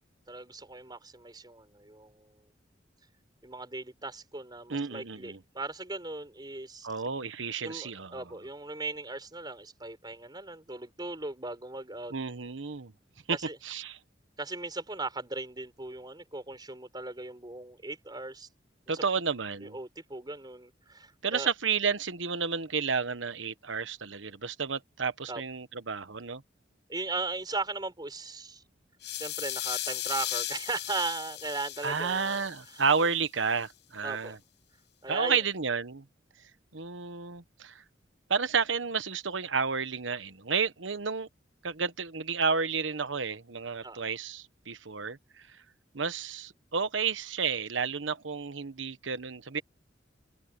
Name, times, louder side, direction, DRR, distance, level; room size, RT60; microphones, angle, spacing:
voice 1, 0.3-2.5 3.4-6.9 7.6-12.1 13.5-13.6 14.4-18.5 18.9-19.0 19.6-21.5 25.3-25.4 26.9-28.6 29.1-32.4 32.7-32.8 34.0-34.4 35.0-35.4 43.8-44.0, right 3 dB, 25° right, 5.1 m, -38 dB
voice 2, 4.7-5.4 6.8-8.2 12.1-12.9 13.3-13.4 13.6-14.0 18.9-19.8 21.2-26.4 31.8-34.4 35.1-36.1 36.7-37.8 38.3-41.3 41.6-45.6 45.9-49.6, right 5 dB, 85° right, 1.2 m, -31 dB
sound 1, 29.0-33.1, left 13 dB, 65° left, 6.8 m, -36 dB
open air
head